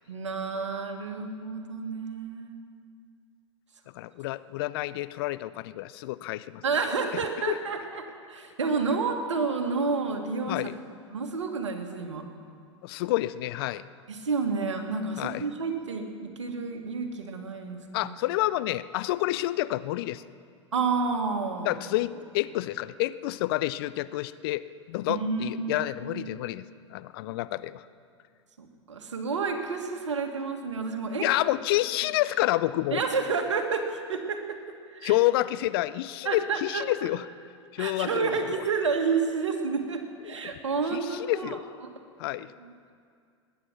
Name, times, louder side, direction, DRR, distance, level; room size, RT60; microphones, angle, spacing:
voice 1, 0.1-2.6 6.6-8.0 8.3-10.6 11.1-12.2 14.1-18.1 20.7-21.8 25.1-26.2 28.6-31.2 32.9-34.6 34.9-35.2 36.3-37.1 37.8-41.6 42.6-42.7, right 4 dB, 75° right, 5 dB, 1.7 m, -30 dB
voice 2, 3.9-6.6 7.5-7.6 10.5-10.8 12.8-13.9 15.2-15.4 17.9-20.2 21.6-27.8 31.2-33.0 35.0-37.3 37.7-38.3 38.5-38.6 40.4-40.5 40.9-41.6 42.2-42.5, left 16 dB, 50° left, 16 dB, 0.5 m, -29 dB
20.5 x 9.5 x 6.2 m, 2.2 s
figure-of-eight pair, 95°, 15 cm